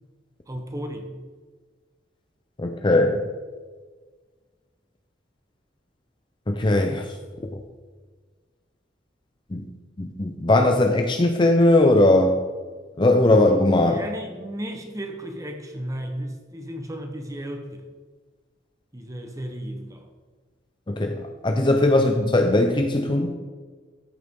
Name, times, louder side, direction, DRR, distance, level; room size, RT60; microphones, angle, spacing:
voice 1, 0.5-1.2 13.8-17.8 18.9-20.1, equal, 15° right, 4 dB, 0.9 m, -34 dB
voice 2, 2.6-3.2 6.5-7.2 7.5-7.6 9.5-9.6 10.0-12.4 13.0-14.0 20.9-23.3, left 2 dB, 25° left, 4 dB, 0.6 m, -19 dB
14.0 x 6.8 x 3.6 m, 1.4 s
head